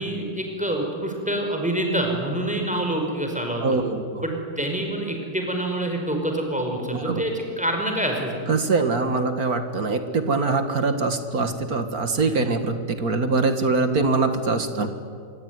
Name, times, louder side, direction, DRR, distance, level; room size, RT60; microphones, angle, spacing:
voice 1, 0.0-3.8 4.2-8.4 12.2-12.5, right 1 dB, 5° right, 2 dB, 5.2 m, -26 dB
voice 2, 3.6-4.2 6.9-7.2 8.5-14.9, right 3 dB, 50° right, 8 dB, 2.3 m, -23 dB
26.5 x 23.5 x 9.6 m, 2.3 s
omnidirectional pair, 2.0 m